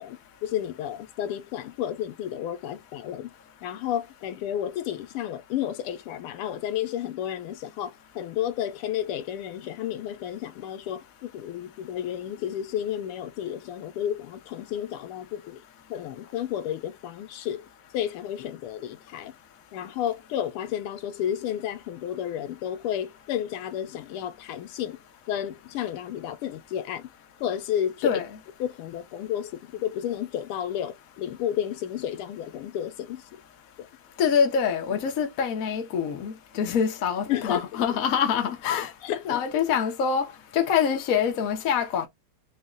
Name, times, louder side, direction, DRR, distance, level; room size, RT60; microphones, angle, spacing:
voice 1, 0.0-3.3 3.6-15.6 15.9-17.6 17.9-19.3 19.7-25.0 25.3-27.1 27.4-28.2 28.6-33.4 33.8-33.9 34.9-35.0 37.3-38.0 38.7-39.4, left 10 dB, 90° left, 1.6 m, -32 dB
voice 2, 34.2-38.9 39.2-40.2 40.5-42.1, left 7 dB, 70° left, 0.8 m, -25 dB
4.0 x 2.2 x 3.7 m
omnidirectional pair, 2.4 m